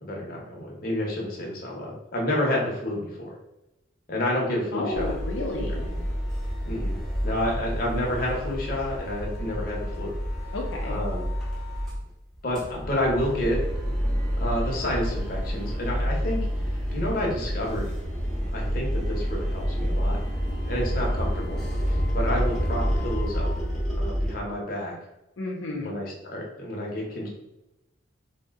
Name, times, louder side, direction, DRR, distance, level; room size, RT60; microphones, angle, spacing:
voice 1, 0.0-3.3 4.1-5.1 5.6-5.8 6.6-7.0 7.2-10.1 10.9-11.2 12.4-13.6 14.4-16.5 16.7-17.9 18.5-20.2 20.7-21.6 21.9-23.5 24.0-24.9 25.7-27.3, left 1 dB, 45° left, -2 dB, 0.7 m, -29 dB
voice 2, 4.7-5.9 10.5-11.0 25.4-25.9, left 2 dB, 85° left, -1 dB, 0.5 m, -31 dB
sound 1, 4.9-12.0 12.3-24.3, equal, ahead, 0.6 m, -28 dB
2.6 x 2.1 x 3.5 m, 0.94 s
head